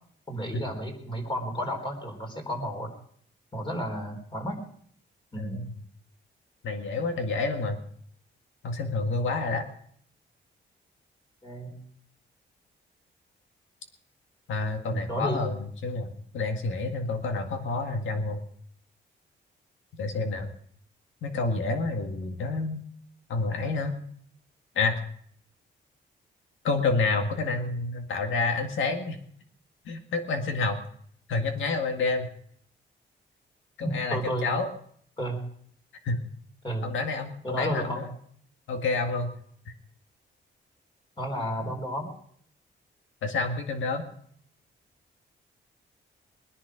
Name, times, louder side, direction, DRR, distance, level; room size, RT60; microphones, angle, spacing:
voice 1, 0.3-2.9 3.5-4.7 5.3-5.6 11.4-11.8 14.9-15.4 33.8-34.5 35.2-35.4 36.6-36.9 37.4-38.0 41.2-42.2, equal, 25° left, 2 dB, 4.2 m, -32 dB
voice 2, 5.4-5.7 6.6-7.8 8.6-9.6 14.5-18.4 20.0-20.5 21.2-22.8 23.3-24.0 24.8-25.0 26.6-29.2 29.9-30.8 31.3-32.3 33.8-34.7 36.0-36.2 36.8-38.1 38.7-39.3 39.7-39.8 43.2-44.0, left 3 dB, 85° left, 5 dB, 1.9 m, -29 dB
21.5 x 10.5 x 5.1 m, 0.62 s
cardioid pair, 110°, 20 cm